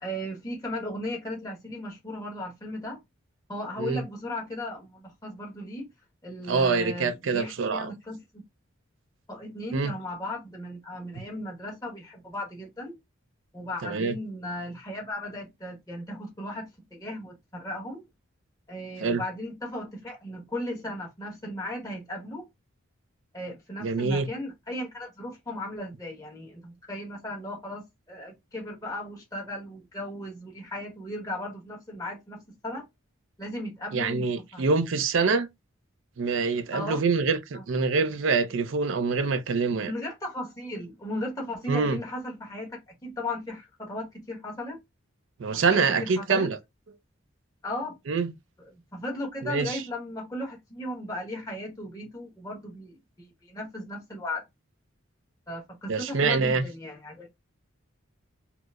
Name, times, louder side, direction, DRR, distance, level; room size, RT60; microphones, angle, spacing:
voice 1, 0.0-3.0 3.5-5.9 6.2-8.4 9.3-13.0 13.5-18.1 18.7-22.5 23.3-32.8 33.4-34.3 34.5-34.6 36.7-37.0 37.5-37.6 39.8-44.8 45.5-46.5 47.6-47.9 48.9-54.4 55.5-57.3, left 1 dB, 15° left, 1.1 m, -36 dB
voice 2, 6.5-7.9 9.7-9.9 13.8-14.2 19.0-19.2 23.8-24.3 33.9-35.5 36.2-39.9 41.7-42.0 45.4-46.6 48.1-48.3 49.4-49.8 55.9-56.7, right 4 dB, 70° right, 0.4 m, -25 dB
4.4 x 2.0 x 2.4 m
head